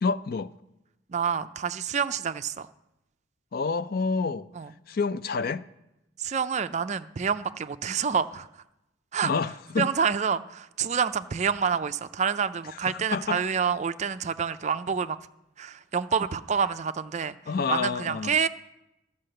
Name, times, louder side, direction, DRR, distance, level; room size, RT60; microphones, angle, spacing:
voice 1, 0.0-0.5 3.5-4.5 4.9-5.6 9.2-9.9 12.9-13.4 17.5-18.4, left 4 dB, 50° left, 0.4 m, -28 dB
voice 2, 1.1-2.7 4.6-4.7 6.2-8.5 9.1-9.3 9.8-15.2 15.6-17.4 17.7-18.5, right 6 dB, 35° right, 0.4 m, -27 dB
13.0 x 5.6 x 7.7 m
head